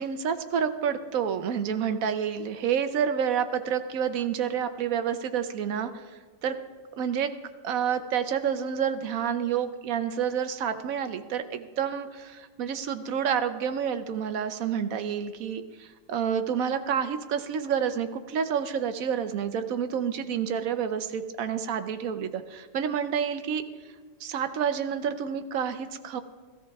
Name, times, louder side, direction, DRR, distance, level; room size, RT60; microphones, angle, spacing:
voice 1, 0.0-6.0 6.4-6.6 7.0-7.3 7.6-23.6 24.2-26.2, right 8 dB, 60° right, 9 dB, 1.0 m, -29 dB
16.0 x 13.5 x 3.5 m, 1.4 s
omnidirectional pair, 2.0 m